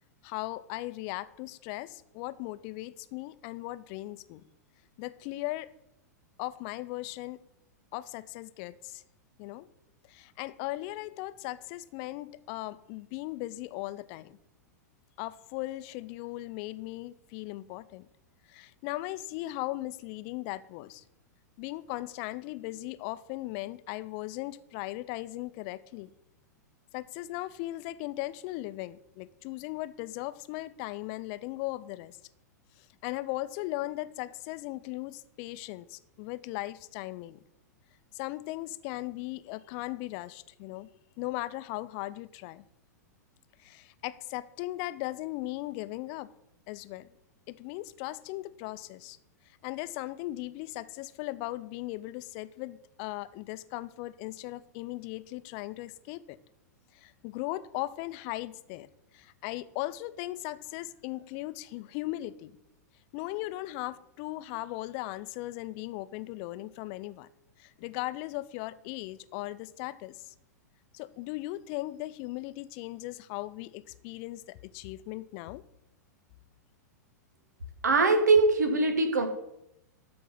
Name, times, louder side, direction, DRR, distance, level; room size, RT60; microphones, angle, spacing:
voice 1, 0.2-4.4 5.0-5.7 6.4-7.4 7.9-9.0 9.4-9.7 10.1-14.4 15.2-18.1 18.5-21.0 21.6-26.1 26.9-32.2 32.8-37.4 38.1-40.9 41.2-42.6 43.6-46.3 46.7-47.1 47.5-49.2 49.6-56.4 56.9-58.9 59.1-62.5 63.1-67.3 67.6-70.3 70.9-75.6, left 17 dB, 45° left, 16 dB, 0.6 m, -38 dB
voice 2, 77.8-79.3, right 3 dB, 75° right, 7 dB, 1.5 m, -22 dB
13.0 x 4.7 x 5.5 m, 0.83 s
figure-of-eight pair, 100°, 9 cm